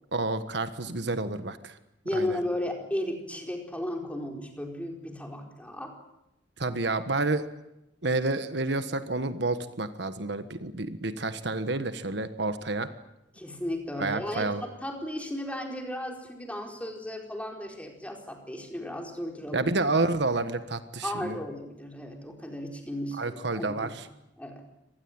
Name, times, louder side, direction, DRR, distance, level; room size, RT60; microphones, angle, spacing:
voice 1, 0.1-1.8 2.1-2.4 6.6-7.5 8.0-12.9 14.0-14.6 19.5-21.4 23.2-24.1, right 2 dB, 70° right, 10 dB, 1.4 m, -29 dB
voice 2, 2.0-5.9 13.3-19.7 21.0-23.9 24.4-24.6, left 1 dB, 10° left, 2 dB, 4.4 m, -35 dB
25.5 x 19.5 x 8.9 m, 0.88 s
head